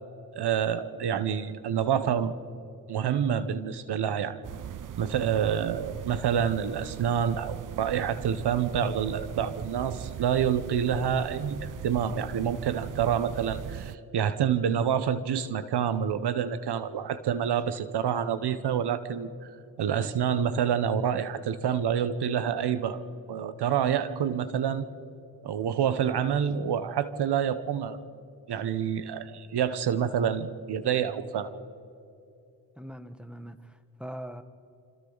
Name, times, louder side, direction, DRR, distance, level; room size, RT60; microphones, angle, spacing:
voice 1, 0.3-2.4 2.9-4.4 5.0-19.3 19.8-23.0 23.3-24.8 25.4-28.0 28.5-31.5, right 8 dB, 75° right, 13 dB, 1.2 m, -27 dB
sound 1, 4.4-14.0, right 10 dB, 50° right, 0.6 m, -39 dB
voice 2, 32.8-34.4, equal, ahead, 9 dB, 1.7 m, -41 dB
26.5 x 26.0 x 4.1 m, 2.7 s
supercardioid pair, 40°, 40 cm